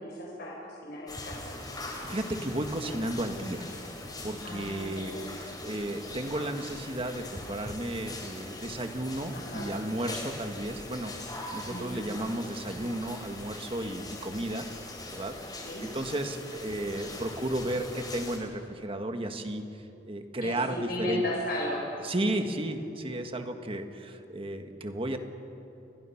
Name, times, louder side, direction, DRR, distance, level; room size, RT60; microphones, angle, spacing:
voice 1, 0.0-1.4 4.4-5.4 9.3-9.7 11.7-12.1 15.6-15.8 20.4-21.9, left 1 dB, 60° left, -2 dB, 4.3 m, -35 dB
sound 1, 1.1-18.4, left 2 dB, 25° left, 3.6 m, -42 dB
voice 2, 1.9-3.7 4.2-11.1 11.5-14.7 15.0-15.6 15.9-19.6 20.1-21.2 22.0-25.2, right 1 dB, 30° right, 6 dB, 1.6 m, -33 dB
29.0 x 22.0 x 5.9 m, 2.9 s
head